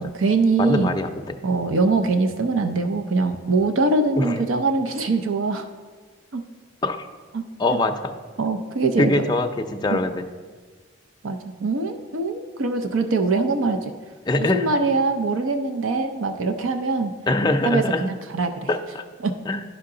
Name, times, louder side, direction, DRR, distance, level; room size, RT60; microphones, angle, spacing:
voice 1, 0.0-0.9 1.4-5.7 6.3-6.4 7.3-7.4 7.7-7.8 8.4-9.1 9.9-10.0 11.2-13.9 14.4-17.1 17.6-18.7 19.2-19.3, right 3 dB, 85° right, 7 dB, 0.6 m, -23 dB
voice 2, 0.6-1.4 4.2-4.4 6.8-7.1 7.6-8.1 9.0-10.2 14.3-14.7 17.3-18.1 18.7-19.0 19.5-19.6, left 2 dB, 20° left, 5 dB, 0.5 m, -23 dB
11.0 x 5.7 x 3.8 m, 1.5 s
head